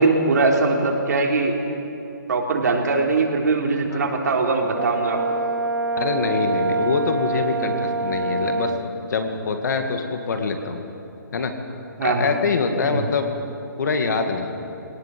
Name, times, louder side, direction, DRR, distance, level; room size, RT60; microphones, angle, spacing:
voice 1, 0.0-1.6 2.3-5.2 12.0-12.3 12.8-13.1, right 3 dB, 55° right, 0 dB, 3.6 m, -21 dB
Brass instrument, 4.7-8.8, right 3 dB, 70° right, 1.3 m, -25 dB
voice 2, 6.0-8.7 9.1-10.8 11.3-11.5 12.0-13.3 13.8-14.5, left 4 dB, 55° left, 6 dB, 2.3 m, -24 dB
22.0 x 18.5 x 7.8 m, 2.9 s
hypercardioid pair, 160°, 11 cm